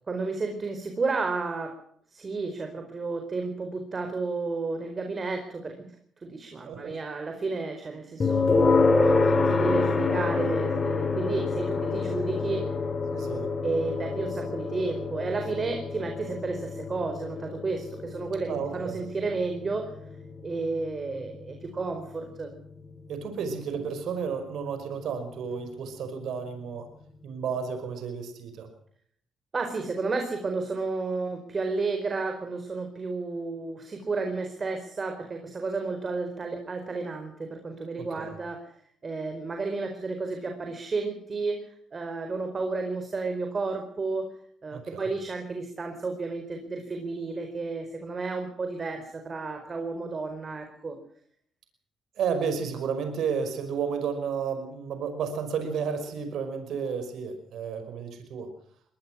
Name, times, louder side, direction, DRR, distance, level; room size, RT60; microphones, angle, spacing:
voice 1, 0.1-1.7 2.1-5.9 6.2-8.5 9.0-12.7 13.6-19.9 20.4-22.5 29.5-38.7 39.0-41.6 41.9-44.3 44.6-51.0, right 3 dB, 35° right, 5 dB, 4.6 m, -32 dB
voice 2, 6.7-7.0 13.1-13.5 18.5-19.0 23.1-26.9 27.2-28.7 38.0-38.3 44.7-45.1 52.2-58.5, right 6 dB, 75° right, 8 dB, 5.3 m, -32 dB
sound 1, 8.2-23.1, left 3 dB, 35° left, 4.4 m, -27 dB
23.5 x 19.0 x 6.2 m, 0.64 s
cardioid pair, 90°, 0 cm